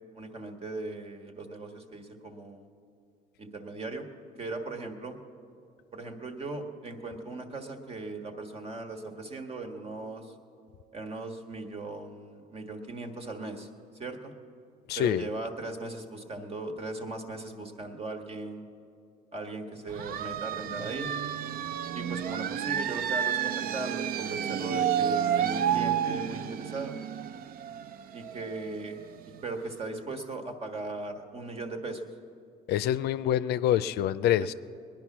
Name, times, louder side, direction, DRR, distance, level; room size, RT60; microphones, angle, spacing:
voice 1, 0.1-2.7 3.4-4.1 4.4-5.2 5.9-10.3 10.9-13.7 14.0-14.3 14.9-18.6 19.3-21.1 21.9-27.0 28.1-29.0 29.4-32.1 34.4-34.5, right 2 dB, 35° right, 5 dB, 1.6 m, -38 dB
voice 2, 14.9-15.3 32.7-34.5, left 11 dB, 75° left, 14 dB, 0.5 m, -26 dB
sound 1, 19.9-29.4, right 9 dB, 60° right, 0.5 m, -31 dB
20.0 x 10.5 x 6.0 m, 2.5 s
cardioid pair, 110°, 17 cm